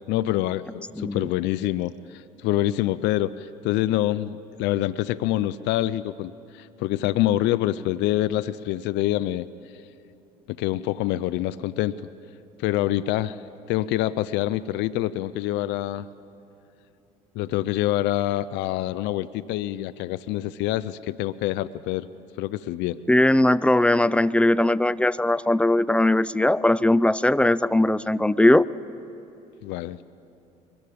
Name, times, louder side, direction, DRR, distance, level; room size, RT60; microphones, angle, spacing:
voice 1, 0.1-9.5 10.5-12.0 12.6-13.4 13.7-16.1 17.3-22.1 22.4-23.0 29.6-30.0, left 14 dB, 65° left, 15 dB, 0.6 m, -26 dB
voice 2, 1.0-1.3 23.1-28.6, left 1 dB, 5° left, 16 dB, 0.5 m, -19 dB
23.0 x 21.0 x 8.5 m, 2.8 s
hypercardioid pair, 65°, 20 cm